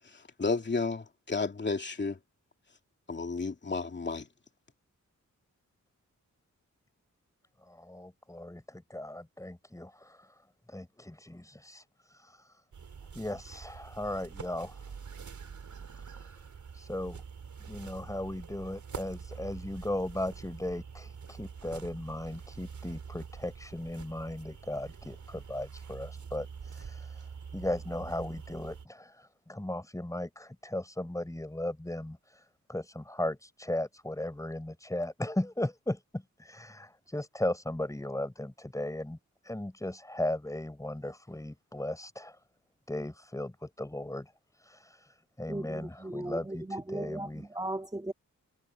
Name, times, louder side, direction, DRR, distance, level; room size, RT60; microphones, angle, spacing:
voice 1, 0.4-2.2 3.1-4.3, left 4 dB, 35° left, 2.7 m, -32 dB
voice 2, 7.6-10.4 10.7-12.6 13.1-15.2 15.9-16.5 16.7-17.2 17.6-39.2 39.4-42.4 42.9-47.5, left 1 dB, 10° left, 6.4 m, -37 dB
sound 1, 12.7-28.9, right 6 dB, 65° right, 3.3 m, -45 dB
voice 3, 45.5-48.1, right 1 dB, 15° right, 3.5 m, -37 dB
wide cardioid pair, 120°, 31 cm